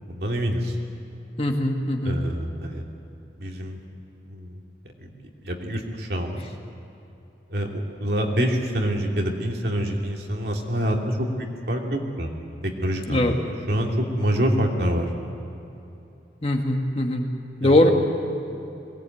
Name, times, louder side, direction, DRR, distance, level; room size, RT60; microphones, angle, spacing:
voice 1, 0.1-0.7 2.0-2.8 3.4-3.8 4.3-4.6 5.0-5.1 5.4-6.4 7.5-12.3 12.6-15.1 17.6-17.8, equal, 65° right, 0 dB, 2.9 m, -26 dB
voice 2, 1.4-2.2 13.1-13.3 16.4-17.3 17.6-17.9, left 1 dB, 35° left, 2 dB, 2.1 m, -21 dB
22.0 x 18.5 x 9.4 m, 2.9 s
head